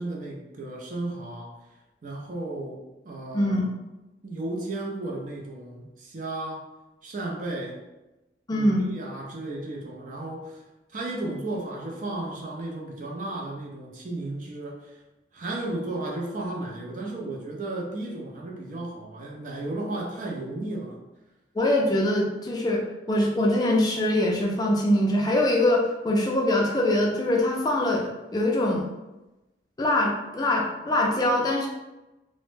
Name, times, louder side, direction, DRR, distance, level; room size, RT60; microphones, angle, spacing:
voice 1, 0.0-1.6 2.0-3.6 4.2-6.6 7.0-7.8 8.5-10.6 10.9-15.0 15.3-21.0, right 2 dB, 45° right, -1 dB, 0.5 m, -34 dB
voice 2, 8.5-8.8 21.5-28.9 29.8-31.7, left 1 dB, 20° left, -1 dB, 0.3 m, -23 dB
2.0 x 2.0 x 3.1 m, 1.0 s
head